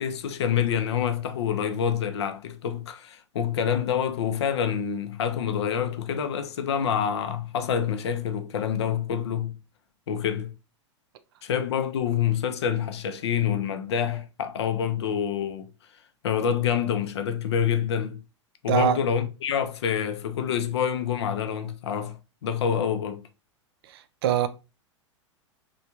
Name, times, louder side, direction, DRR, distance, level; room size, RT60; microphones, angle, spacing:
voice 1, 0.0-9.5 10.1-10.5 11.4-15.7 16.2-18.2 18.6-23.2, left 8 dB, 60° left, 0.5 m, -27 dB
voice 2, 18.7-19.0 23.9-24.5, right 10 dB, 55° right, 0.4 m, -23 dB
3.2 x 2.2 x 2.8 m
figure-of-eight pair, 90°, 16 cm